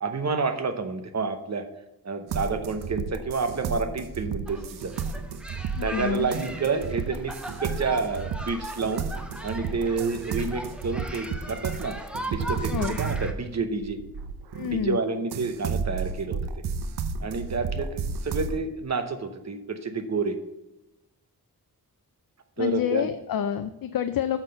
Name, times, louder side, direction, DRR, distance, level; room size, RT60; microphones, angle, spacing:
voice 1, 0.0-1.7 2.0-4.9 5.8-7.3 7.6-9.1 9.4-11.9 12.3-14.0 14.6-16.4 17.2-20.4 22.6-23.1, right 4 dB, 45° right, 8 dB, 0.9 m, -29 dB
sound 1, 2.3-14.9 15.3-18.6, right 5 dB, 85° right, 0.6 m, -33 dB
sound 2, 4.5-13.3, equal, 5° right, 0.7 m, -39 dB
voice 2, 5.8-6.3 12.7-13.0 14.5-15.0 22.6-24.4, left 9 dB, 65° left, 10 dB, 0.5 m, -28 dB
6.7 x 5.9 x 5.4 m, 0.93 s
wide cardioid pair, 140°, 38 cm